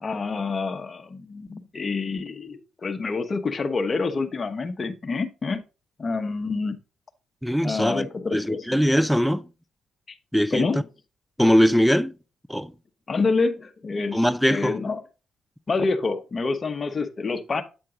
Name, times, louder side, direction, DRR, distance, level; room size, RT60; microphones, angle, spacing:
voice 1, 0.0-5.6 6.0-6.8 7.6-8.8 10.1-10.2 10.5-10.8 13.1-15.0 15.7-17.6, left 4 dB, 35° left, 0.8 m, -27 dB
voice 2, 7.4-9.5 10.3-10.7 11.4-12.1 12.5-12.7 14.1-14.8, equal, ahead, 0.4 m, -21 dB
7.9 x 4.5 x 3.7 m
cardioid pair, 90°, 0 cm